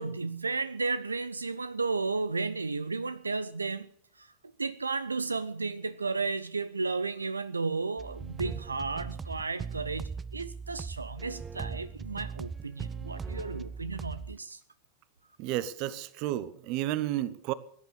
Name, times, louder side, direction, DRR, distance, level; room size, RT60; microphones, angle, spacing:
voice 1, 0.0-3.9 4.2-4.3 4.6-14.6, right 4 dB, 80° right, 0.5 m, -33 dB
sound 1, 8.0-14.4, right 5 dB, 20° right, 0.6 m, -39 dB
voice 2, 15.4-17.5, right 14 dB, 45° right, 1.0 m, -32 dB
17.5 x 10.5 x 6.9 m
figure-of-eight pair, 90°, 0 cm